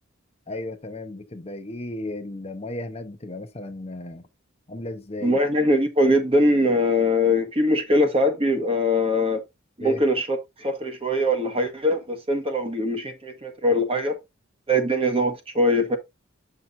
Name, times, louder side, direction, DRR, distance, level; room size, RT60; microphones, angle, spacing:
voice 1, 0.5-4.2 4.7-5.4 9.8-10.0, left 2 dB, 30° left, 0.8 m, -35 dB
voice 2, 5.2-9.4 9.8-14.2 14.7-16.0, left 1 dB, 30° right, 1.4 m, -22 dB
8.5 x 6.0 x 2.6 m
head